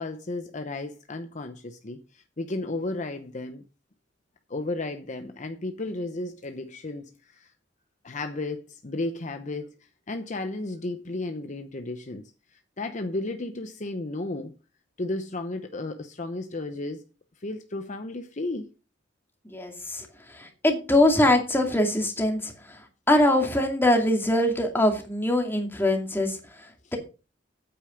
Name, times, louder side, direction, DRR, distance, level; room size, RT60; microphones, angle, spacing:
voice 1, 0.0-3.6 4.5-7.5 8.0-14.6 15.0-17.0 17.4-18.7 26.8-26.9, left 2 dB, 40° left, 0.9 m, -34 dB
voice 2, 19.4-22.8 23.1-27.0, left 1 dB, 10° left, 2.4 m, -23 dB
8.9 x 8.5 x 5.1 m
head